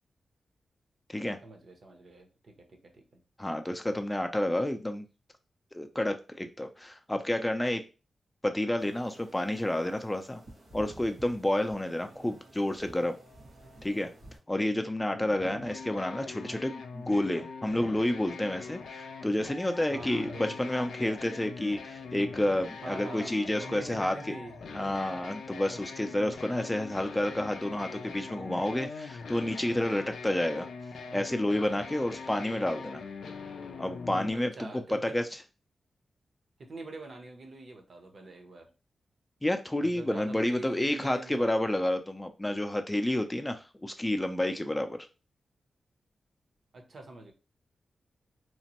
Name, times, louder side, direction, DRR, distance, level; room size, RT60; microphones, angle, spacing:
voice 1, 1.4-3.2 19.9-20.8 22.8-24.6 34.3-35.2 36.6-38.7 39.8-41.7 46.7-47.3, right 2 dB, 65° right, 4 dB, 0.7 m, -45 dB
voice 2, 3.4-5.0 5.7-7.8 8.4-10.4 10.7-13.2 13.8-14.1 14.5-24.3 24.7-30.7 31.1-33.0 33.8-35.2 39.4-45.0, left 1 dB, 15° left, 7 dB, 0.4 m, -30 dB
sound 1, 8.8-14.4, right 1 dB, 85° right, 1.3 m, -52 dB
sound 2, 15.1-34.3, left 5 dB, 90° left, 0.4 m, -42 dB
3.0 x 2.1 x 2.8 m, 0.31 s
cardioid pair, 60°, 0 cm